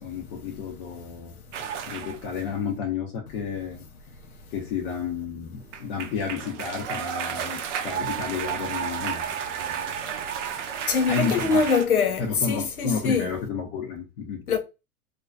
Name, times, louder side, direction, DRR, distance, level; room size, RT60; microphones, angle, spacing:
voice 1, 0.0-1.4 1.9-3.8 4.5-9.9 11.1-11.7 12.2-14.4, left 6 dB, 35° left, 0.6 m, -31 dB
sound 1, 1.5-2.2 5.6-11.9, right 8 dB, 60° right, 0.5 m, -32 dB
voice 2, 10.9-13.3 14.5-14.6, left 5 dB, 85° left, 0.7 m, -23 dB
2.5 x 2.2 x 2.2 m
figure-of-eight pair, 100°, 42 cm